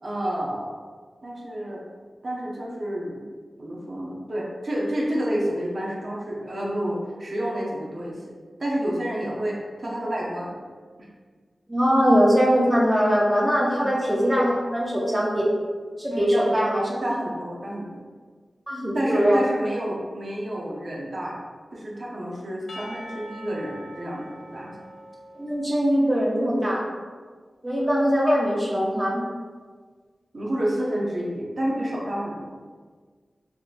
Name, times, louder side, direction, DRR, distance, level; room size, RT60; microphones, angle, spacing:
voice 1, 0.0-0.8 1.2-1.9 2.2-3.2 3.6-8.3 8.6-10.5 13.7-13.9 16.1-16.5 16.9-18.0 18.9-21.4 21.7-24.8 30.3-32.5, right 1 dB, 55° right, -4 dB, 0.6 m, -29 dB
voice 2, 11.7-15.5 16.0-16.8 18.7-19.4 25.4-26.9 27.6-29.2, equal, 15° right, -4 dB, 0.5 m, -21 dB
Percussion / Church bell, 22.7-26.3, equal, 70° left, 0.4 m, -43 dB
3.7 x 2.3 x 2.4 m, 1.5 s
wide cardioid pair, 75°, 0 cm